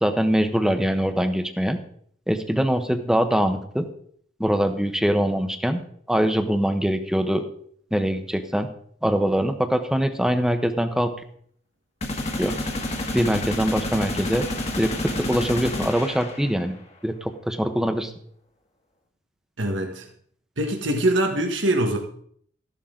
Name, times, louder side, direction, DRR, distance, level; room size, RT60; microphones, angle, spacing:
voice 1, 0.0-1.8 2.3-3.9 4.4-5.8 6.1-7.4 7.9-8.7 9.0-11.1 12.4-12.5 13.1-14.4 14.8-14.9 15.3-16.7 17.0-18.1, equal, 5° right, 7 dB, 1.0 m, -23 dB
sound 1, 12.0-16.7, left 1 dB, 35° left, 1.7 m, -29 dB
voice 2, 19.6-20.1 20.6-22.0, right 1 dB, 85° right, 3 dB, 1.5 m, -23 dB
14.0 x 11.5 x 3.8 m, 0.62 s
head